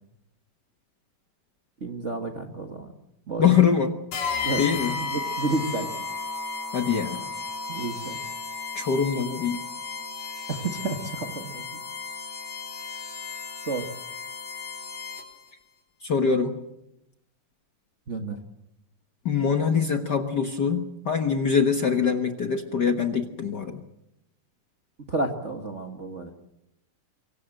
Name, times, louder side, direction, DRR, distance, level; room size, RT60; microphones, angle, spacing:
voice 1, 1.8-2.9 3.3-3.5 4.4-4.6 5.0-5.9 7.7-8.2 10.5-11.8 13.7-13.9 18.1-18.4 25.1-26.3, right 3 dB, 45° right, 4 dB, 0.9 m, -31 dB
voice 2, 3.4-4.0 4.6-5.0 6.7-7.3 8.7-9.6 16.0-16.6 19.2-23.8, left 6 dB, 60° left, 6 dB, 1.1 m, -23 dB
sound 1, 4.1-15.5, left 4 dB, 85° left, 5.4 m, -34 dB
24.5 x 24.0 x 7.7 m, 0.85 s
omnidirectional pair, 3.8 m